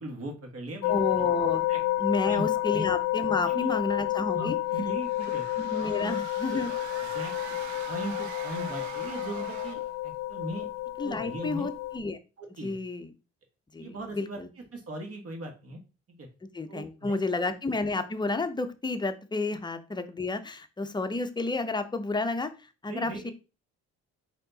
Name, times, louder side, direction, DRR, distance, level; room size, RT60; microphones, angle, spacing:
voice 1, 0.0-1.2 1.7-1.8 2.2-2.4 2.7-2.9 3.4-3.7 4.3-5.4 5.8-6.2 6.5-6.6 7.1-7.3 7.8-10.7 11.0-11.7 12.4-12.8 13.8-14.4 14.7-15.8 16.2-16.3 16.7-17.4 22.9-23.3, right 1 dB, 50° right, 3 dB, 1.5 m, -38 dB
sound 1, 0.8-12.0, left 16 dB, 80° left, 0.4 m, -30 dB
voice 2, 0.9-1.7 2.0-4.6 5.6-6.7 11.0-12.2 12.6-13.1 13.7-14.5 16.5-22.5 22.8-23.3, left 3 dB, 15° left, 9 dB, 0.5 m, -31 dB
sound 2, 5.0-10.0, right 10 dB, 75° right, 0.6 m, -43 dB
4.4 x 2.8 x 3.9 m, 0.31 s
cardioid pair, 90°, 30 cm